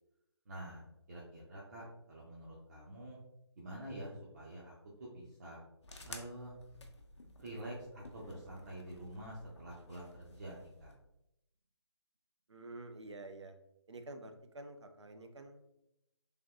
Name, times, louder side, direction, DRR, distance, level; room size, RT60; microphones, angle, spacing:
voice 1, 0.5-3.2 3.6-4.7 5.0-5.6 6.1-6.6 7.4-10.9, right 1 dB, 35° right, -5 dB, 0.6 m, -47 dB
sound 1, 5.8-11.0, left 2 dB, 75° left, 0.6 m, -54 dB
voice 2, 12.5-13.6 13.9-15.8, right 2 dB, 80° right, 7 dB, 0.4 m, -49 dB
3.3 x 2.6 x 2.4 m, 0.85 s
figure-of-eight pair, 145°, 15 cm